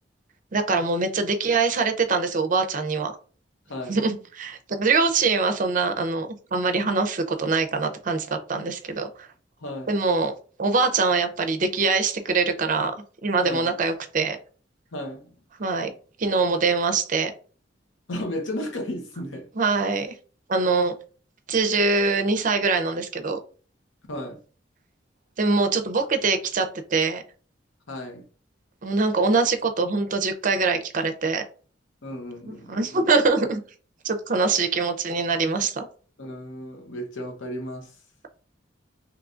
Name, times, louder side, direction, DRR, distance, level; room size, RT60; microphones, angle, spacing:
voice 1, 0.5-3.1 3.9-9.3 9.9-10.3 10.6-12.9 13.2-14.4 15.6-15.9 16.2-17.3 19.6-20.1 20.5-20.9 21.5-23.4 25.4-27.2 28.8-31.4 32.5-33.6 34.0-35.9, right 4 dB, 45° right, 0.5 m, -23 dB
voice 2, 9.6-9.9 13.4-13.7 14.9-15.3 18.1-19.5 24.1-24.4 27.9-28.3 32.0-33.1 36.2-37.9, left 1 dB, 85° left, 0.8 m, -34 dB
3.7 x 3.0 x 2.4 m
head